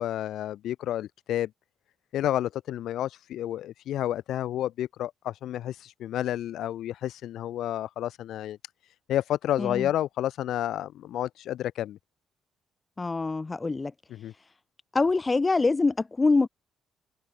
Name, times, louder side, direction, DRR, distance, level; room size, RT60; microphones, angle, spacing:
voice 1, 0.0-1.5 2.1-8.6 9.1-12.0 14.1-14.3, left 12 dB, 80° left, 3.1 m, -30 dB
voice 2, 13.0-13.9 14.9-16.5, left 3 dB, 25° left, 1.9 m, -24 dB
cardioid pair, 90°, 0 cm